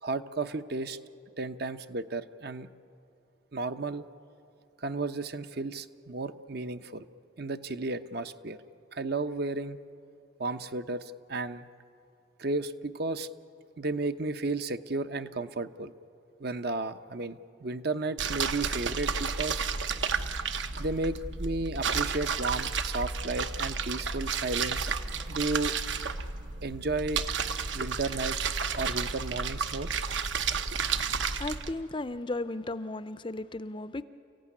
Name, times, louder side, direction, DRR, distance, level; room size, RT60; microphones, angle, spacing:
voice 1, 0.0-1.0 1.4-2.7 3.5-4.0 4.8-7.1 7.4-8.6 8.9-9.8 10.4-11.7 12.4-13.3 13.8-15.9 16.4-19.7 20.8-24.9 25.3-25.7 26.6-27.2 27.7-28.5 28.7-29.9, right 3 dB, 50° right, 10 dB, 0.8 m, -33 dB
sound 1, 18.2-31.7, right 5 dB, 70° right, 1.0 m, -32 dB
voice 2, 31.4-34.0, left 2 dB, 25° left, 13 dB, 0.5 m, -35 dB
29.5 x 15.5 x 9.8 m, 2.5 s
head